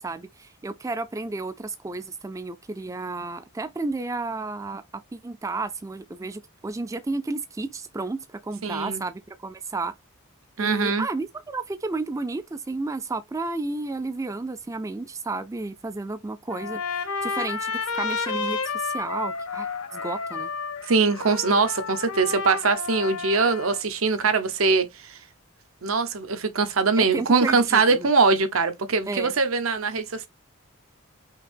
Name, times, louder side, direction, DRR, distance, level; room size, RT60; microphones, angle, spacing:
voice 1, 0.0-4.8 5.1-9.9 10.6-16.8 17.2-20.5 27.0-28.1 29.1-29.3, right 3 dB, 15° right, 0.3 m, -32 dB
voice 2, 8.6-9.0 10.6-11.1 20.9-25.2 25.8-30.3, right 4 dB, 75° right, 0.9 m, -22 dB
Trumpet, 16.5-23.8, left 4 dB, 85° left, 1.0 m, -31 dB
5.7 x 2.8 x 3.4 m
head